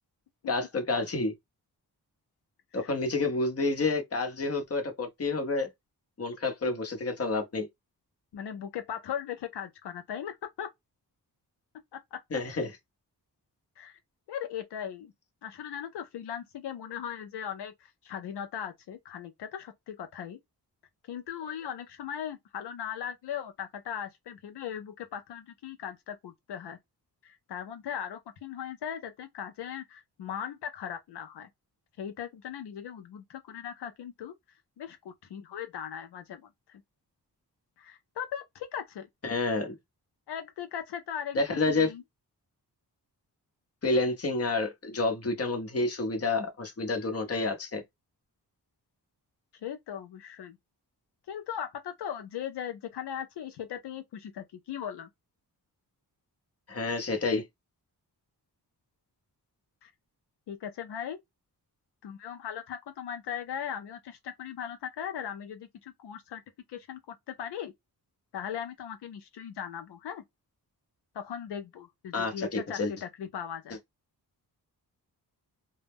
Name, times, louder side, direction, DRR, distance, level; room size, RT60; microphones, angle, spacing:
voice 1, 0.5-1.3 2.7-5.7 6.2-7.7 12.3-12.8 39.2-39.8 41.3-41.9 43.8-47.8 56.7-57.4 72.1-72.9, left 3 dB, 35° left, 0.8 m, -29 dB
voice 2, 8.3-10.7 11.9-12.2 13.8-14.0 14.3-15.1 15.4-20.4 21.1-26.8 27.2-31.5 32.0-34.3 34.8-36.8 37.8-39.1 40.3-42.0 49.6-50.6 51.3-55.1 59.8-59.9 60.5-61.2 62.0-66.4 66.7-67.0 67.3-67.7 68.3-70.2 71.1-73.8, left 9 dB, 80° left, 0.5 m, -38 dB
2.1 x 2.1 x 3.3 m
wide cardioid pair, 85°, 40 cm